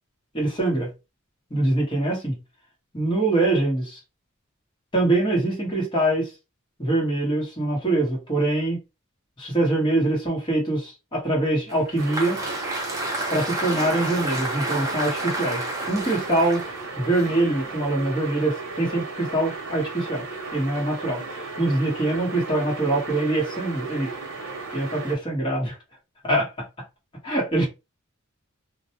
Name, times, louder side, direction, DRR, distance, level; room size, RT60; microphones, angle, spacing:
voice 1, 0.3-0.9 1.5-2.4 2.9-3.8 4.9-6.3 6.8-8.8 9.4-12.4 13.3-16.6 17.0-20.2 20.5-24.1 24.7-25.8 26.2-26.5 27.2-27.7, right 2 dB, 25° left, 1.2 m, -24 dB
Applause, 11.7-18.0, right 1 dB, 15° right, 0.6 m, -31 dB
sound 1, 12.0-25.2, right 3 dB, 85° right, 0.8 m, -35 dB
2.5 x 2.1 x 2.8 m
head